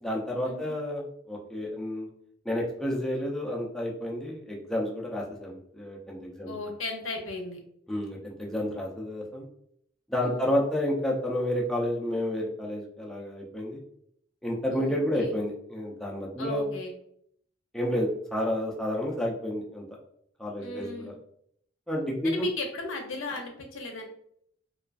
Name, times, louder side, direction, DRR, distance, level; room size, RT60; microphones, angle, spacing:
voice 1, 0.0-2.1 2.4-6.5 7.9-9.5 10.1-13.8 14.4-16.7 17.7-19.8 20.4-20.9 21.9-22.4, left 1 dB, ahead, -3 dB, 0.4 m, -30 dB
voice 2, 6.5-7.6 10.2-10.6 14.7-15.3 16.4-16.9 20.6-21.1 22.2-24.0, left 2 dB, 85° left, 3 dB, 0.6 m, -36 dB
2.4 x 2.3 x 2.3 m, 0.68 s
head